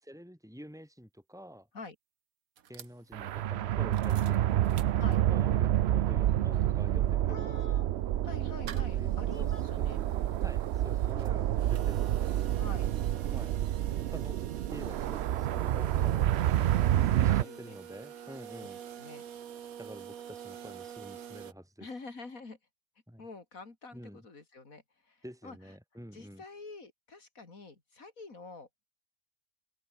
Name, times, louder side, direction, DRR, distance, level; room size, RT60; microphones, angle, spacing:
voice 1, 0.0-1.7 2.7-4.5 5.3-7.5 8.9-9.1 9.4-10.1 10.4-12.3 13.3-13.5 14.1-14.4 14.7-16.3 16.9-19.1 19.8-21.9 23.1-23.3 23.9-24.2 25.2-26.4, equal, ahead, 5.3 m, -48 dB
sound 1, 2.6-5.5 5.9-6.0 6.2-21.5, right 9 dB, 85° right, 1.5 m, -48 dB
sound 2, 3.1-17.4, right 12 dB, 65° right, 0.7 m, -28 dB
voice 2, 7.3-7.9 8.2-10.0 12.6-12.9 17.2-17.8 18.6-18.7 19.0-19.2 21.8-22.6 23.2-25.7 26.1-28.7, left 3 dB, 80° left, 3.8 m, -47 dB
omnidirectional pair, 1.4 m